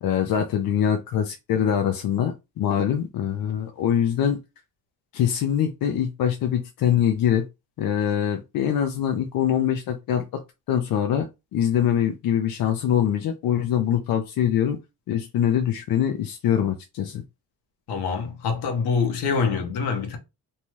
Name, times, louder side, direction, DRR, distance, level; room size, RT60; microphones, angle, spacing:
voice 1, 0.0-4.4 5.1-7.5 7.8-10.4 10.7-14.8 15.1-17.2, left 9 dB, 60° left, 0.5 m, -23 dB
voice 2, 17.9-20.2, left 5 dB, 75° left, 1.0 m, -25 dB
2.7 x 2.2 x 3.1 m
cardioid pair, 125°, 40 cm